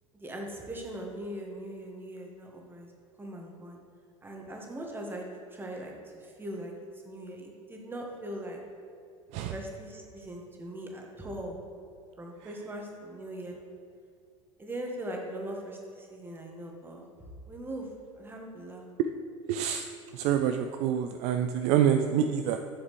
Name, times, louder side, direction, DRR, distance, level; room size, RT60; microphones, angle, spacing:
voice 1, 0.1-2.9 3.2-3.8 4.2-5.3 5.5-6.7 7.0-8.6 9.3-11.6 12.2-13.6 14.6-17.1 17.5-17.9 18.1-18.8, right 1 dB, 15° right, 1 dB, 1.5 m, -40 dB
voice 2, 19.5-19.9 20.1-22.6, right 9 dB, 45° right, 7 dB, 0.4 m, -26 dB
11.0 x 7.2 x 3.2 m, 2.3 s
figure-of-eight pair, 75°, 16 cm